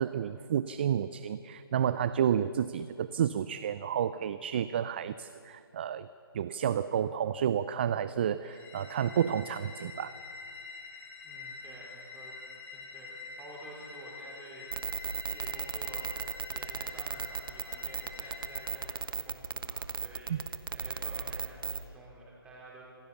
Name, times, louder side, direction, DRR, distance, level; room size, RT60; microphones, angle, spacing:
voice 1, 0.0-6.1 6.3-10.1 20.3-20.4, right 9 dB, 25° right, 14 dB, 0.4 m, -30 dB
drone phone, 8.4-19.0, left 4 dB, 15° left, 2.5 m, -46 dB
voice 2, 11.2-12.4 12.7-16.2 16.5-22.8, right 2 dB, 5° right, -4 dB, 4.3 m, -50 dB
sound 1, 14.7-21.8, right 5 dB, 60° right, 1.3 m, -35 dB
26.5 x 15.5 x 7.1 m, 2.4 s
figure-of-eight pair, 150°, 13 cm